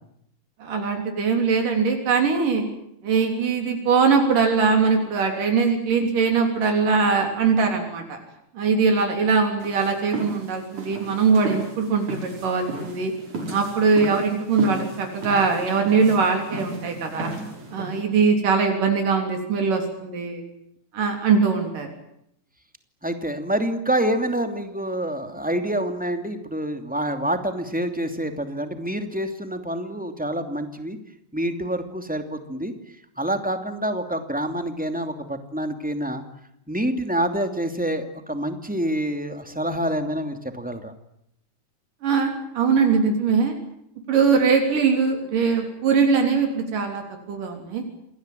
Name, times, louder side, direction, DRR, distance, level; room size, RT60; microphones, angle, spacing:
voice 1, 0.6-2.6 3.0-8.2 8.5-13.1 13.5-17.3 17.7-20.4 20.9-21.9 42.0-43.5 44.1-47.0 47.3-47.8, right 5 dB, 85° right, 3 dB, 5.1 m, -21 dB
sound 1, 9.6-18.0, right 2 dB, 65° right, 7.0 m, -34 dB
voice 2, 23.0-31.0 31.3-32.7 33.2-36.2 36.7-40.9, right 1 dB, 5° right, 7 dB, 2.2 m, -27 dB
27.5 x 20.5 x 9.2 m, 0.74 s
omnidirectional pair, 3.7 m